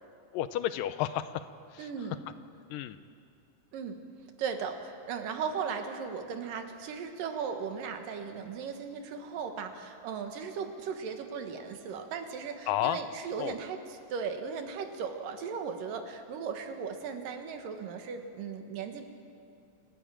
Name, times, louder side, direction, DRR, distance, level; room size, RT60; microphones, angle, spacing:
voice 1, 0.3-1.4 1.7-2.1 2.7-3.0 12.7-13.0 13.4-13.6, left 12 dB, 85° left, 12 dB, 2.4 m, -32 dB
voice 2, 1.8-2.2 3.7-4.0 4.4-13.8 14.1-19.1, right 6 dB, 85° right, 5 dB, 3.2 m, -37 dB
29.0 x 13.5 x 8.9 m, 2.4 s
omnidirectional pair, 3.9 m